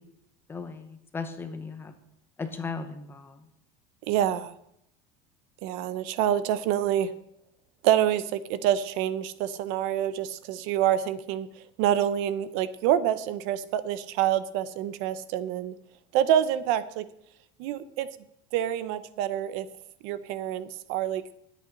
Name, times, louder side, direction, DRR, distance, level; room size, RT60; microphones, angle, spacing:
voice 1, 0.5-2.0 2.4-3.5, left 4 dB, 15° left, 7 dB, 1.1 m, -37 dB
voice 2, 4.1-4.5 5.6-7.1 7.8-11.5 11.8-15.7 16.1-17.0 17.6-18.1 18.5-19.7 20.0-21.2, right 11 dB, 65° right, 14 dB, 0.8 m, -26 dB
20.0 x 8.5 x 3.9 m, 0.78 s
cardioid pair, 160°, 15 cm